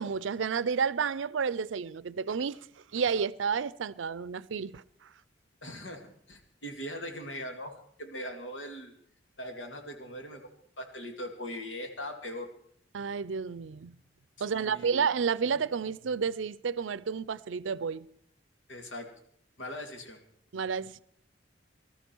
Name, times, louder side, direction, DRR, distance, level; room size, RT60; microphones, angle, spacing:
voice 1, 0.0-2.7 2.9-5.1 12.9-14.0 14.4-18.1 20.5-21.0, right 6 dB, 90° right, 0.5 m, -31 dB
voice 2, 5.6-8.9 9.4-10.5 10.8-12.5 14.4-15.0 18.7-19.1 19.6-20.2, equal, 80° left, 2.4 m, -40 dB
20.0 x 13.0 x 4.6 m
head